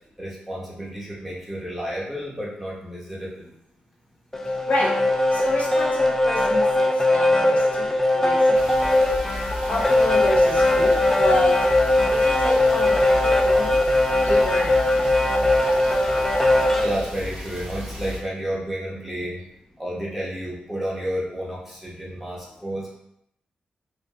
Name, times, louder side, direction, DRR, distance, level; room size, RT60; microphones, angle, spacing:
voice 1, 0.2-3.5 16.8-19.4 19.8-23.0, equal, 5° right, -6 dB, 1.1 m, -31 dB
sound 1, 4.3-16.9, left 1 dB, 10° left, 0.3 m, -20 dB
voice 2, 5.3-8.6 9.7-11.5 12.1-13.8 14.2-14.8, left 1 dB, 55° left, -4 dB, 0.7 m, -29 dB
sound 2, 8.5-18.2, equal, 60° right, 1.5 m, -34 dB
2.9 x 2.5 x 2.2 m, 0.76 s
supercardioid pair, 50°, 3 cm